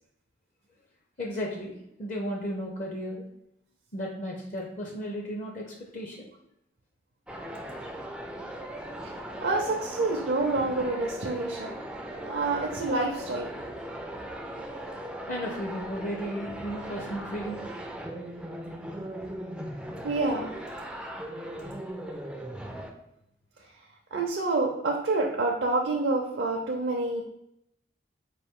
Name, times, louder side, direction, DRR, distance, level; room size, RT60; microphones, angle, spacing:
voice 1, 1.2-3.2 3.9-6.3 15.3-17.7, equal, 40° left, 0 dB, 0.6 m, -34 dB
sound 1, 7.3-22.9, right 1 dB, 5° right, 0.3 m, -38 dB
voice 2, 9.4-11.7 12.2-13.5 20.0-20.5 24.1-27.2, right 3 dB, 60° right, 0 dB, 0.5 m, -27 dB
4.4 x 2.6 x 3.6 m, 0.79 s
head